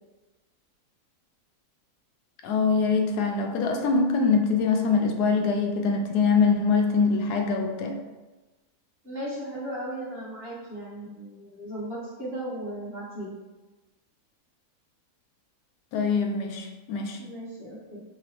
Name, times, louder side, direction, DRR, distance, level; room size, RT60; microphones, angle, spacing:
voice 1, 2.4-8.0 15.9-17.2, left 4 dB, 80° left, 3 dB, 1.1 m, -23 dB
voice 2, 9.0-13.4 17.2-18.0, right 1 dB, 40° right, -7 dB, 1.3 m, -36 dB
5.3 x 3.0 x 2.9 m, 1.2 s
omnidirectional pair, 1.7 m